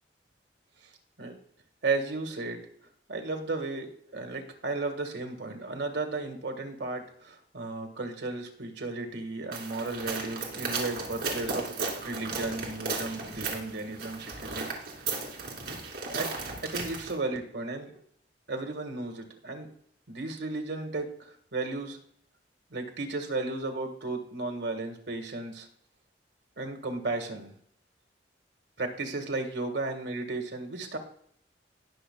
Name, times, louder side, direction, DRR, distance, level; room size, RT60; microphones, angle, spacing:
voice 1, 1.8-2.6 3.1-14.7 16.1-16.3 16.6-18.0 18.5-19.7 20.1-22.0 22.7-25.7 26.6-27.5 28.8-31.0, right 3 dB, 75° right, 5 dB, 1.6 m, -34 dB
sound 1, 9.5-17.1, right 4 dB, 55° right, 2.6 m, -35 dB
19.5 x 6.4 x 2.3 m, 0.63 s
head